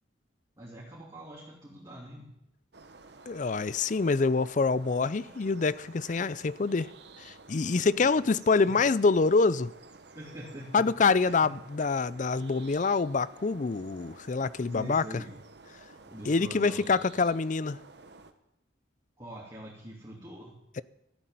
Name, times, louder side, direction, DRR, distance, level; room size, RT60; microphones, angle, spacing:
voice 1, 0.6-2.3 8.0-8.6 10.1-10.8 11.2-11.5 14.7-15.3 16.0-16.9 19.2-20.6, right 1 dB, 20° right, 3.2 m, -44 dB
sound 1, 2.7-18.3, right 3 dB, 60° right, 1.2 m, -52 dB
voice 2, 3.3-6.9 7.2-9.7 10.7-15.0 16.3-17.8, left 4 dB, 40° left, 0.5 m, -26 dB
14.0 x 8.5 x 9.3 m
head